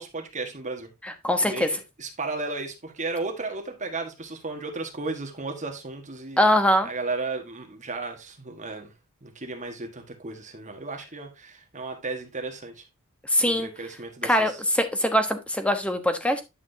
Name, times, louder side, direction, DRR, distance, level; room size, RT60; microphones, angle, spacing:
voice 1, 0.0-0.9 1.4-6.4 6.8-8.9 9.2-12.8 13.4-14.6, right 3 dB, 35° right, 1.5 m, -34 dB
voice 2, 1.0-1.7 6.4-6.9 13.3-13.7 14.2-16.4, equal, 5° left, 1.0 m, -22 dB
9.8 x 6.0 x 2.7 m
head